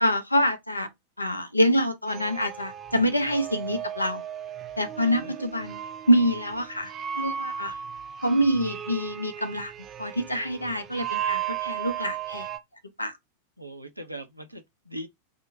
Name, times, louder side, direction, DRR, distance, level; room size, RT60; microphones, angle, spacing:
voice 1, 0.0-0.9 1.2-4.2 4.8-7.7 8.2-9.7 10.0-12.5 13.0-13.2, equal, 85° left, 0.6 m, -26 dB
sound 1, 2.1-12.6, right 9 dB, 25° right, 0.4 m, -35 dB
voice 2, 13.6-15.1, right 1 dB, 85° right, 0.5 m, -40 dB
2.6 x 2.1 x 2.6 m
figure-of-eight pair, 90°, 0 cm